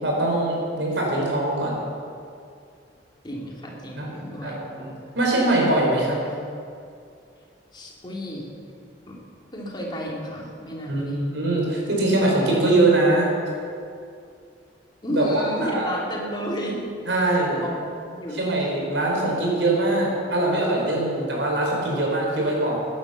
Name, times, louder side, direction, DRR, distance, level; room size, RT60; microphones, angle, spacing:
voice 1, 0.0-1.8 4.0-4.1 4.4-4.9 5.1-6.2 10.9-13.3 15.1-15.9 17.1-17.6 18.3-22.8, right 2 dB, 85° right, -2 dB, 4.5 m, -22 dB
voice 2, 3.2-4.6 7.7-8.5 9.1-9.2 9.5-11.3 15.0-16.9 17.2-18.4, equal, 25° left, -3 dB, 2.9 m, -32 dB
15.5 x 10.0 x 7.0 m, 2.4 s
head